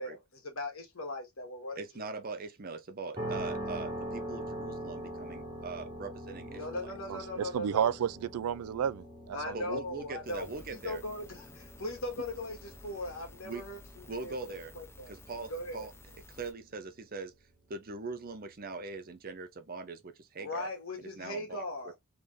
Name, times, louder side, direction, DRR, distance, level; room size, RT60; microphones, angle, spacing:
voice 1, 0.0-2.1 6.5-7.9 9.3-10.5 10.7-15.1 15.5-15.9 20.4-22.0, left 1 dB, 65° left, 1.7 m, -39 dB
voice 2, 1.8-6.9 9.5-11.0 13.4-13.6 14.1-14.7 15.1-15.9 16.4-17.3 17.7-20.7 21.0-21.6, right 3 dB, 40° right, 0.7 m, -41 dB
sound 1, 3.2-19.0, right 1 dB, 20° right, 1.7 m, -44 dB
voice 3, 7.1-9.8, right 8 dB, 90° right, 0.3 m, -32 dB
sound 2, 10.2-16.5, left 2 dB, 10° left, 0.6 m, -54 dB
3.5 x 3.4 x 3.7 m
head